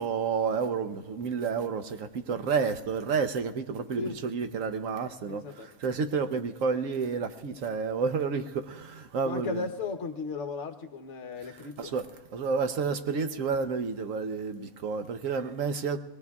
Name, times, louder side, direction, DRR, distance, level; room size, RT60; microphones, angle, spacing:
voice 1, 0.0-5.4 5.8-9.6 11.8-12.1 12.3-16.0, right 5 dB, 65° right, 8 dB, 1.2 m, -30 dB
voice 2, 5.3-5.7 9.2-11.9, left 4 dB, 55° left, 7 dB, 1.2 m, -36 dB
24.0 x 18.0 x 2.4 m, 1.3 s
omnidirectional pair, 1.5 m